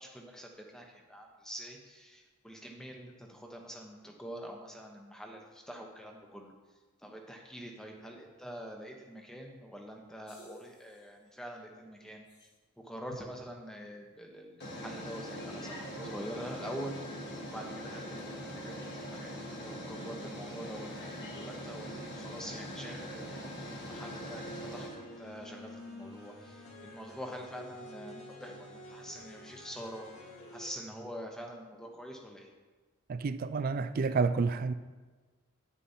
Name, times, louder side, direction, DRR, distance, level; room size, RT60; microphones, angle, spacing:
voice 1, 0.0-6.5 7.0-12.2 12.8-17.0 17.5-30.1 30.5-32.5, equal, 5° left, 0.9 m, -45 dB
sound 1, 10.3-10.7 12.4-12.5 14.6-24.9, equal, 50° left, 1.4 m, -42 dB
sound 2, 23.6-30.7, left 1 dB, 75° left, 2.1 m, -49 dB
voice 2, 33.1-34.7, right 4 dB, 40° right, 0.3 m, -29 dB
9.8 x 9.3 x 2.8 m
head